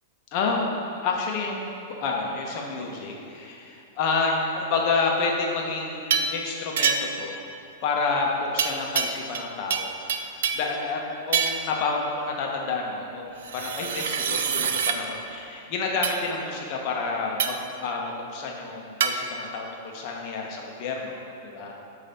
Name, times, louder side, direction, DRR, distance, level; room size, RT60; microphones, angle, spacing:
voice 1, 0.3-1.7 2.0-7.4 7.8-21.2 21.4-21.7, left 4 dB, 50° left, -1 dB, 1.2 m, -29 dB
sound 1, 6.1-6.4 6.8-7.2 8.6-9.4 9.7-10.7 11.3-11.7 13.4-15.0 16.0-16.2 17.4-17.7 19.0-19.2, right 6 dB, 70° right, 0.5 m, -26 dB
8.2 x 3.2 x 5.8 m, 2.6 s
hypercardioid pair, 105°, 0 cm